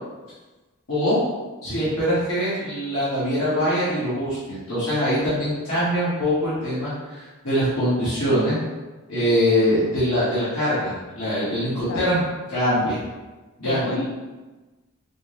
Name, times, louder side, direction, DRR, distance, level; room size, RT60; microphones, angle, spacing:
voice 1, 0.9-1.2 1.6-8.6 9.1-12.2 12.5-13.0 13.6-14.0, equal, 85° left, -11 dB, 1.3 m, -23 dB
voice 2, 11.7-12.3 13.6-14.1, left 3 dB, 55° left, 5 dB, 0.4 m, -33 dB
4.5 x 2.2 x 3.1 m, 1.2 s
head